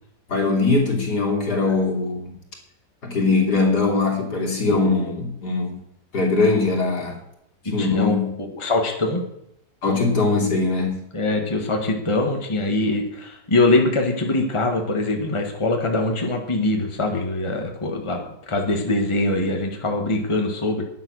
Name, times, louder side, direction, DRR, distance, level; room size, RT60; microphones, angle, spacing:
voice 1, 0.3-2.3 3.0-5.8 6.1-7.2 7.6-8.4 9.8-11.0, left 3 dB, 80° left, -1 dB, 3.7 m, -21 dB
voice 2, 4.7-5.2 7.6-9.2 11.1-20.8, left 2 dB, 20° left, 2 dB, 1.7 m, -23 dB
11.5 x 9.6 x 6.4 m, 0.78 s
omnidirectional pair, 1.7 m